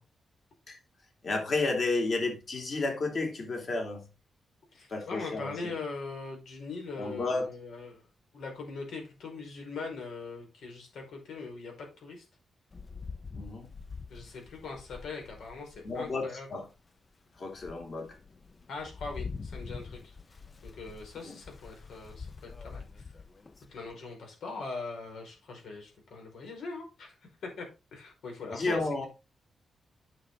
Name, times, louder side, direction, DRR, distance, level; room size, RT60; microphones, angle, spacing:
voice 1, 1.2-4.1 4.9-5.8 7.0-7.5 13.3-13.7 15.8-16.7 17.4-18.2 21.2-21.4 28.4-29.1, left 3 dB, 45° left, 3.1 m, -32 dB
voice 2, 4.7-8.0 8.3-12.2 14.1-16.5 18.7-20.1 20.6-23.0 23.7-27.1 27.4-27.7 27.9-28.8, left 4 dB, 85° left, 4.9 m, -41 dB
Rain, 12.7-16.2 16.8-16.9 17.4-23.9, left 4 dB, 30° left, 0.6 m, -45 dB
9.3 x 6.4 x 4.0 m
wide cardioid pair, 135°, 0 cm